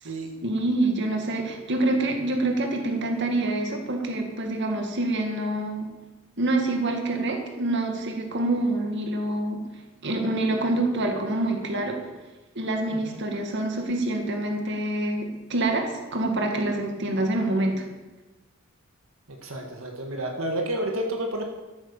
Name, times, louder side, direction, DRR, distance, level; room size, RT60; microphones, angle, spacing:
voice 1, 0.4-5.9 6.4-9.6 10.0-12.0 12.6-17.8, right 2 dB, 60° right, 3 dB, 2.0 m, -26 dB
voice 2, 19.4-21.4, right 1 dB, 80° right, 2 dB, 1.9 m, -30 dB
13.0 x 9.2 x 7.1 m, 1.1 s
head